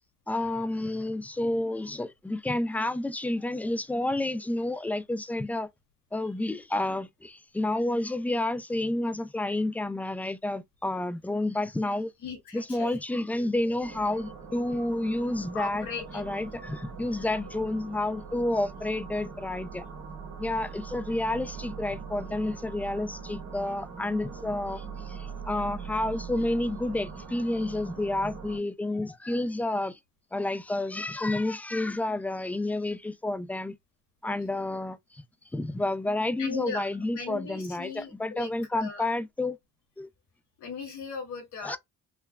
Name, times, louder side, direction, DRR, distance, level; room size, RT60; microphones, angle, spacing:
voice 1, 0.3-5.7 6.1-12.1 12.5-15.9 16.1-19.8 20.4-30.0 30.3-33.7 34.2-35.2 35.5-39.6 40.0-40.1 41.6-41.8, left 2 dB, 5° left, 0.4 m, -30 dB
voice 2, 12.2-12.9 15.5-16.2 23.6-23.7 36.4-36.9 37.1-39.1 40.6-41.8, left 5 dB, 75° left, 2.4 m, -38 dB
sound 1, 13.8-28.6, right 5 dB, 70° right, 1.9 m, -42 dB
5.5 x 2.1 x 2.2 m
cardioid pair, 90°, 30 cm